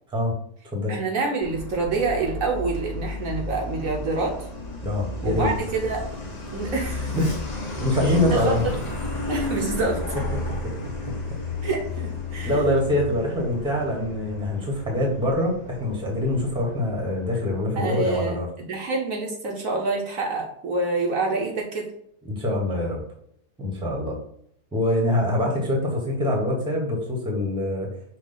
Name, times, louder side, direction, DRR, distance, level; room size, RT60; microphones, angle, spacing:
voice 1, 0.9-4.5 5.2-6.1 6.5-7.2 8.0-8.9 9.3-10.0 11.6-12.6 17.8-18.4 18.7-21.9, right 3 dB, 65° right, 0 dB, 1.1 m, -27 dB
Truck, 1.4-17.6, left 2 dB, 35° left, 0.7 m, -33 dB
voice 2, 4.8-5.5 7.1-7.4 7.8-8.7 9.4-9.5 10.6-10.7 12.4-18.5 22.3-23.0 23.6-24.2 24.7-27.9, left 1 dB, 5° right, -1 dB, 0.9 m, -24 dB
5.5 x 2.4 x 3.9 m, 0.71 s
omnidirectional pair, 1.7 m